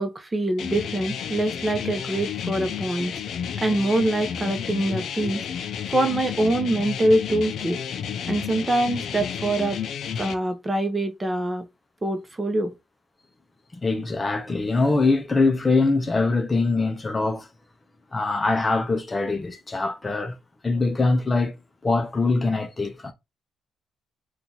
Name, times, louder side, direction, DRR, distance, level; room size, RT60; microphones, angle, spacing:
voice 1, 0.0-3.1 3.6-5.4 5.9-7.8 8.3-9.8 10.2-11.6 12.0-12.7, right 1 dB, 20° right, 0.8 m, -24 dB
sound 1, 0.6-10.3, left 8 dB, 70° left, 0.5 m, -31 dB
voice 2, 13.7-17.5 18.1-20.4 20.6-21.6 21.8-23.1, left 3 dB, 25° left, 0.6 m, -23 dB
2.8 x 2.4 x 3.9 m
cardioid pair, 90°, 0 cm